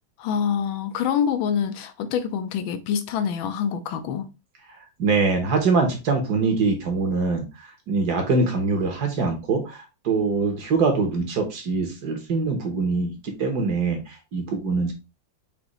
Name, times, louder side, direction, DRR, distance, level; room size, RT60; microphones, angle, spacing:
voice 1, 0.2-4.3, left 8 dB, 80° left, 1.4 m, -26 dB
voice 2, 5.0-14.9, right 4 dB, 60° right, 1.4 m, -23 dB
5.3 x 2.9 x 3.0 m
omnidirectional pair, 2.2 m